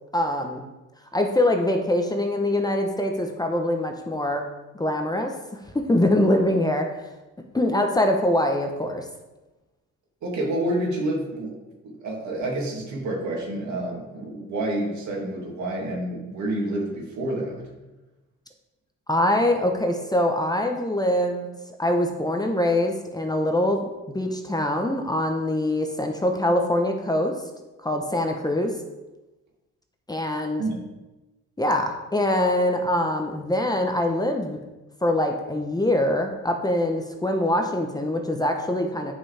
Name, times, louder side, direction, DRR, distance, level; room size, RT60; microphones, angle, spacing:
voice 1, 0.1-0.7 1.1-4.5 4.7-6.9 7.5-9.1 19.1-21.5 21.8-27.4 27.8-28.7 30.1-30.6 31.6-34.6 35.0-39.1, left 1 dB, 15° left, 3 dB, 0.9 m, -23 dB
voice 2, 10.2-11.5 11.8-17.7 30.6-30.9, right 1 dB, 70° right, -1 dB, 2.4 m, -28 dB
9.7 x 5.5 x 3.4 m, 1.1 s
cardioid pair, 90°, 30 cm